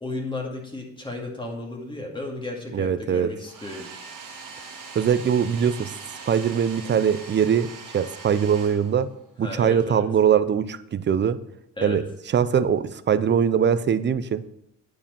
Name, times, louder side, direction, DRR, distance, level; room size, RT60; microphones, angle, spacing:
voice 1, 0.0-3.8 9.4-10.0 11.8-12.0, left 2 dB, 15° left, 0 dB, 2.2 m, -34 dB
voice 2, 2.7-3.3 4.9-5.9 6.3-9.1 9.4-11.4 11.8-12.0 12.3-14.4, right 8 dB, 35° right, 14 dB, 0.6 m, -22 dB
Domestic sounds home sounds, 3.4-9.3, right 4 dB, 85° right, 2.0 m, -41 dB
9.7 x 4.8 x 5.4 m, 0.77 s
cardioid pair, 90°, 30 cm